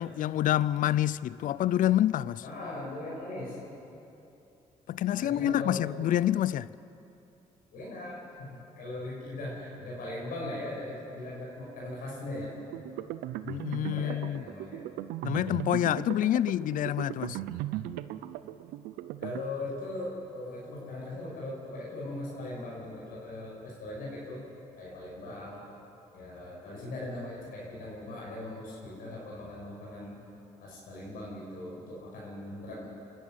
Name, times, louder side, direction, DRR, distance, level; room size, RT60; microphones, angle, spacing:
voice 1, 0.0-2.4 4.9-6.7 13.4-14.4 15.2-17.4, left 12 dB, 65° left, 0.5 m, -27 dB
voice 2, 2.4-3.6 5.1-5.8 7.7-8.2 8.5-12.5 13.7-14.8 15.9-16.2 19.2-24.4 24.8-25.6 26.1-30.2 30.6-32.9, left 2 dB, 80° left, 6.3 m, -39 dB
sound 1, 12.7-19.4, right 13 dB, 85° right, 0.6 m, -38 dB
25.5 x 12.5 x 9.3 m
supercardioid pair, 65°, 15 cm